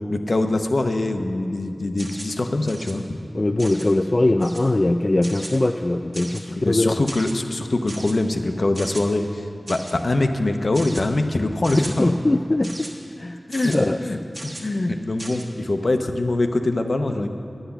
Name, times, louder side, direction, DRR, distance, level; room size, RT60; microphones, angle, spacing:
voice 1, 0.1-3.0 6.6-12.1 13.5-13.7 14.0-14.2 14.4-17.3, left 2 dB, 65° left, 6 dB, 0.7 m, -23 dB
sound 1, 2.0-2.4 2.7-2.9 3.6-3.9 4.4-4.7 5.2-5.6 6.1-6.5 7.1-7.3 7.9-8.1 8.7-9.0 9.7-10.0 10.7-11.0 11.6-11.9 12.6-12.9 13.5-13.8 14.3-14.7 15.2-15.4, right 1 dB, 55° right, 1.4 m, -37 dB
voice 2, 3.3-7.0 12.0-12.9 13.2-13.4 13.7-14.0, left 2 dB, 40° left, 6 dB, 0.3 m, -21 dB
10.0 x 8.0 x 7.0 m, 2.5 s
wide cardioid pair, 60°, 0 cm